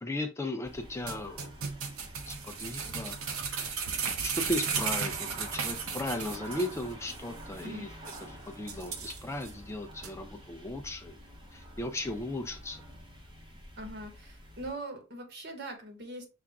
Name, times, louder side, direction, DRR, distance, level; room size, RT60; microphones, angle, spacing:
voice 1, 0.0-1.5 2.3-3.2 4.2-7.9 8.5-11.2 11.5-12.8, left 1 dB, 15° left, 0.4 m, -36 dB
sound 1, 0.6-14.7, equal, 20° right, 0.9 m, -48 dB
sound 2, 1.1-6.8 7.1-7.2 7.6-7.7 8.1-8.2 8.7-9.5 10.0-10.1, right 6 dB, 80° right, 0.7 m, -35 dB
voice 2, 13.8-16.3, right 1 dB, 50° right, 1.3 m, -41 dB
5.7 x 2.4 x 3.5 m
head